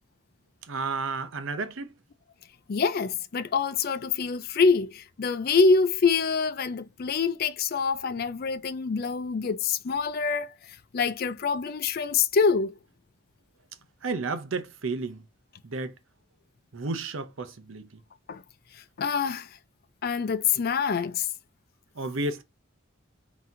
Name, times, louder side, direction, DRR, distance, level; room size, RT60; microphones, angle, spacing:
voice 1, 0.6-1.9 14.0-15.3 15.6-15.9 16.7-18.0 21.9-22.4, right 3 dB, 70° right, 0.7 m, -32 dB
voice 2, 2.7-10.5 10.9-12.7 18.3-18.4 19.0-19.5 20.0-21.3, left 5 dB, 45° left, 0.4 m, -25 dB
4.1 x 2.9 x 3.7 m
head